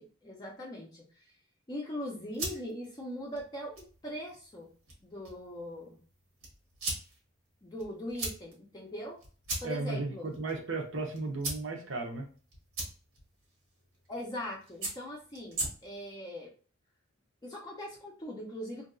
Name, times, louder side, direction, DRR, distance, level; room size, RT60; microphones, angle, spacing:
voice 1, 0.0-1.3 1.7-4.7 5.0-6.0 7.6-9.2 9.6-10.3 14.1-16.5 17.4-18.9, left 1 dB, 20° left, -3 dB, 0.5 m, -41 dB
sound 1, 2.0-16.1, right 2 dB, 80° right, 1.3 m, -42 dB
voice 2, 9.6-12.3, right 3 dB, 65° right, 2 dB, 0.7 m, -35 dB
2.8 x 2.6 x 2.5 m, 0.39 s
head